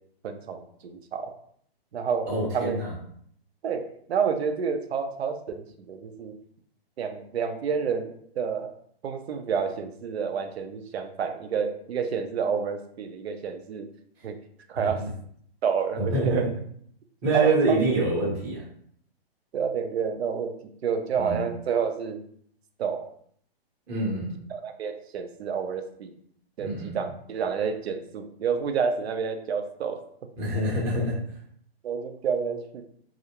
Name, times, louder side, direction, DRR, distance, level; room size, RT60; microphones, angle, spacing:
voice 1, 0.2-1.3 1.9-2.8 3.6-6.3 7.0-8.7 9.0-13.9 14.2-14.4 14.7-15.0 15.6-16.5 17.3-17.8 19.5-22.2 22.8-23.1 24.5-26.1 26.6-30.0 31.8-32.8, right 6 dB, 90° right, 6 dB, 0.6 m, -29 dB
voice 2, 2.3-2.9 14.7-15.1 16.0-16.5 17.2-18.6 21.2-21.4 23.9-24.3 26.6-27.0 30.4-31.2, right 1 dB, 15° right, -6 dB, 0.6 m, -26 dB
2.5 x 2.0 x 2.8 m, 0.63 s
hypercardioid pair, 160°, 31 cm